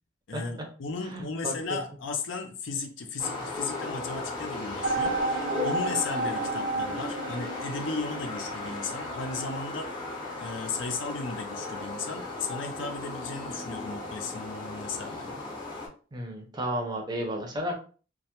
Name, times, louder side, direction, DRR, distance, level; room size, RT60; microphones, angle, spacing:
voice 1, 0.3-9.9 10.4-15.4, left 4 dB, 80° left, 5 dB, 0.5 m, -35 dB
voice 2, 1.0-1.8 16.1-17.8, right 1 dB, 20° right, 2 dB, 0.5 m, -33 dB
sound 1, 3.2-15.9, left 2 dB, 25° left, 0.6 m, -36 dB
sound 2, 4.8-10.4, right 2 dB, 85° right, 0.6 m, -32 dB
2.2 x 2.0 x 2.8 m, 0.38 s
head